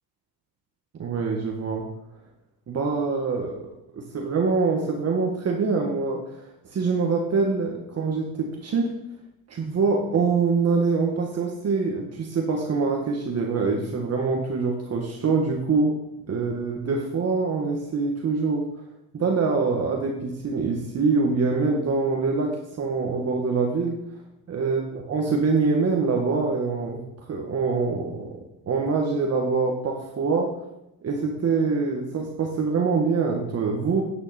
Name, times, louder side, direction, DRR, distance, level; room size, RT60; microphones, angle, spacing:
voice 1, 1.0-1.8 2.7-3.6 3.9-8.9 9.5-16.0 16.3-18.7 19.1-24.0 24.5-27.0 27.3-28.4 28.7-30.5 31.0-34.0, right 4 dB, 45° right, 1 dB, 1.7 m, -24 dB
9.6 x 9.6 x 4.4 m, 0.84 s
cardioid pair, 120°, 35 cm